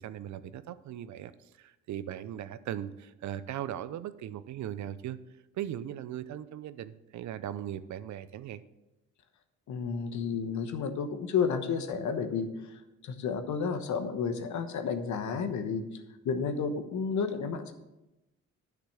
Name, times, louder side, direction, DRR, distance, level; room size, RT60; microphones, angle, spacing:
voice 1, 0.0-1.3 1.6-5.2 5.6-8.6, right 11 dB, 70° right, 14 dB, 0.6 m, -38 dB
voice 2, 9.7-17.7, left 6 dB, 70° left, 8 dB, 1.2 m, -32 dB
10.5 x 5.9 x 6.2 m, 0.96 s
cardioid pair, 90°, 30 cm